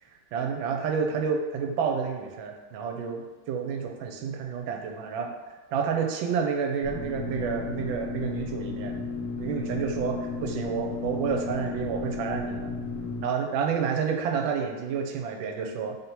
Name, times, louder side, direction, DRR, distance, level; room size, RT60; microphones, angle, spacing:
voice 1, 0.3-5.3 5.7-9.0 9.4-12.7 13.2-16.0, right 6 dB, 80° right, 3 dB, 1.3 m, -29 dB
sound 1, 6.8-13.2, left 4 dB, 60° left, 1.5 m, -34 dB
3.4 x 2.7 x 4.3 m, 1.3 s
omnidirectional pair, 2.2 m